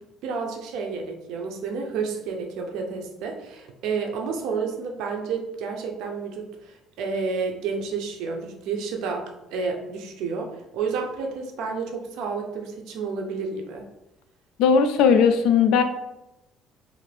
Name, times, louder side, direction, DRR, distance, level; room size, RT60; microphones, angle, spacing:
voice 1, 0.2-13.8, right 5 dB, 75° right, 3 dB, 0.5 m, -30 dB
voice 2, 14.6-15.8, left 6 dB, 80° left, 8 dB, 0.3 m, -18 dB
2.6 x 2.5 x 3.3 m, 0.94 s
cardioid pair, 140°, 0 cm